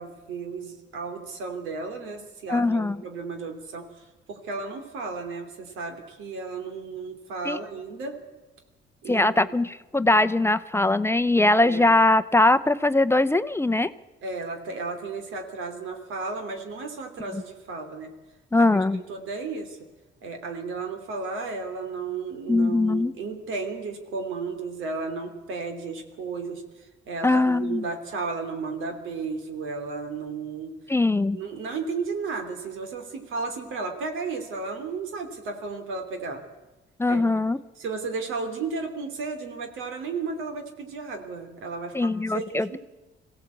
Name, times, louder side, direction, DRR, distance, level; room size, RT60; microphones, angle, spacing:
voice 1, 0.0-8.2 9.0-9.3 11.6-11.9 14.2-18.1 18.6-18.7 18.9-19.8 20.2-30.7 31.3-36.4 37.1-37.2 37.8-42.8, right 4 dB, 85° right, 6 dB, 3.0 m, -34 dB
voice 2, 2.5-3.0 7.4-7.6 9.1-13.9 17.3-17.4 18.5-19.0 22.5-23.1 27.2-27.9 30.9-31.4 37.0-37.6 41.9-42.8, left 2 dB, 10° left, 13 dB, 0.6 m, -21 dB
22.5 x 16.0 x 8.4 m, 1.2 s
cardioid pair, 90°, 20 cm